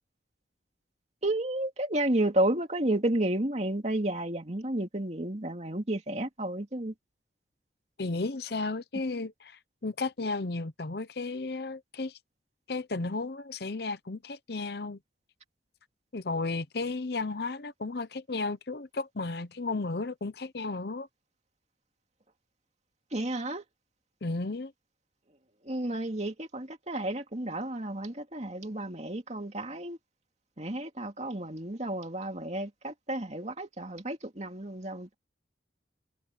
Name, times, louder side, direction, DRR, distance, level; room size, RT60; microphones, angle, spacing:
voice 1, 1.2-6.9 23.1-23.6 25.6-30.0 30.6-35.1, right 1 dB, 35° right, 2.4 m, -31 dB
voice 2, 8.0-12.2 12.7-15.0 16.1-21.1 24.2-24.7, left 3 dB, 55° left, 0.8 m, -34 dB
head